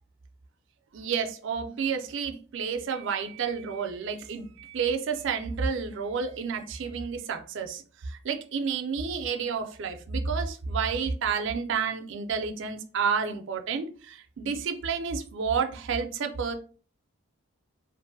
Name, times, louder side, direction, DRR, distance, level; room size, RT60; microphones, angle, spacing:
voice 1, 0.9-16.5, right 6 dB, 60° right, 6 dB, 0.4 m, -30 dB
2.6 x 2.5 x 2.6 m, 0.39 s
head